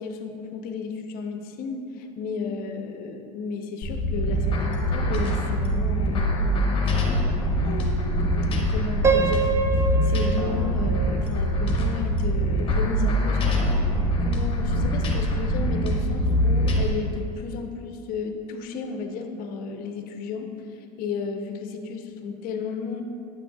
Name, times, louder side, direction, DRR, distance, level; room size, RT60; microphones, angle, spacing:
voice 1, 0.0-20.5 21.0-23.0, left 5 dB, 45° left, 6 dB, 0.6 m, -33 dB
sound 1, 3.8-16.9, equal, 25° left, 1.0 m, -24 dB
Piano, 9.0-12.1, right 5 dB, 15° right, 0.4 m, -26 dB
8.1 x 6.0 x 2.3 m, 2.7 s
hypercardioid pair, 95°, 20 cm